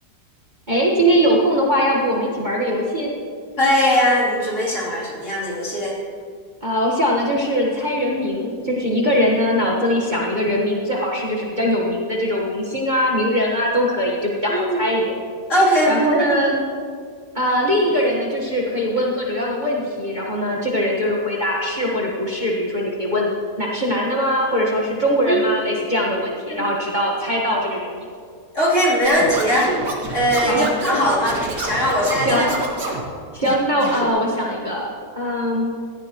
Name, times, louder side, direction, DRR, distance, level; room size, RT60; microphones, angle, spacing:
voice 1, 0.7-3.1 6.6-15.1 15.9-16.6 17.3-28.1 30.5-30.7 32.2-32.5 33.3-35.7, equal, 30° right, -4 dB, 1.5 m, -21 dB
voice 2, 3.6-6.0 14.5-14.8 15.5-16.4 25.3-25.5 26.5-26.7 28.5-29.7 30.1-32.5, equal, 45° left, -6 dB, 3.7 m, -19 dB
Scratching (performance technique), 29.0-33.0 33.4-34.1, right 2 dB, 85° right, 2.5 m, -28 dB
18.0 x 15.0 x 3.1 m, 2.1 s
omnidirectional pair, 1.8 m